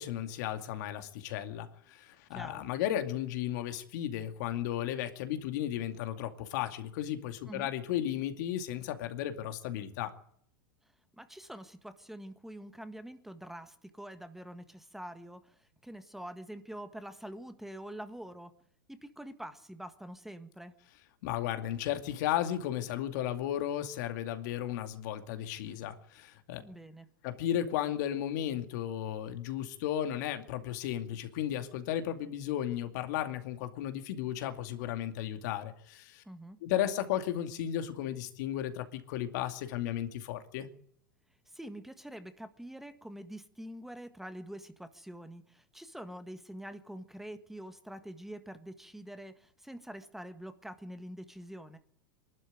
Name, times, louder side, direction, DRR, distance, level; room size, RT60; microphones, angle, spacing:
voice 1, 0.0-10.1 21.2-26.6 27.2-36.2 36.6-40.7, left 11 dB, 60° left, 7 dB, 2.4 m, -34 dB
voice 2, 2.3-2.6 7.5-7.7 11.2-18.5 18.9-20.7 26.6-27.1 36.2-36.6 41.5-51.8, right 1 dB, 5° right, 9 dB, 1.6 m, -45 dB
23.5 x 12.5 x 9.3 m, 0.65 s
hypercardioid pair, 100°, 11 cm